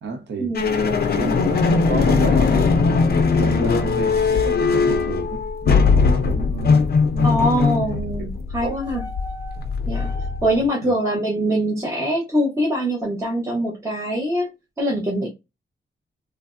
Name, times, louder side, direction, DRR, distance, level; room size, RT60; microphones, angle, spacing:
voice 1, 0.0-0.5 1.0-2.8 3.1-7.7 8.2-8.3 8.6-8.8 10.8-10.9, right 4 dB, 70° right, 0.8 m, -31 dB
sound 1, 0.6-10.7, left 4 dB, 55° left, 0.5 m, -20 dB
voice 2, 7.2-9.0 9.9-10.1 10.4-14.5 14.8-15.3, equal, 15° right, 0.7 m, -23 dB
3.2 x 2.0 x 2.4 m
wide cardioid pair, 155°, 20 cm